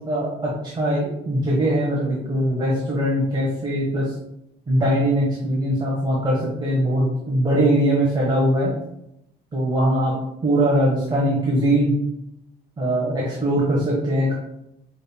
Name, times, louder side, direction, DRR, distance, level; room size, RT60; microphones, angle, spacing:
voice 1, 0.1-4.1 4.7-8.7 9.5-10.1 10.4-12.0 12.8-14.3, right 1 dB, 30° right, -5 dB, 1.4 m, -21 dB
6.4 x 3.6 x 2.3 m, 0.82 s
cardioid pair, 110°, 17 cm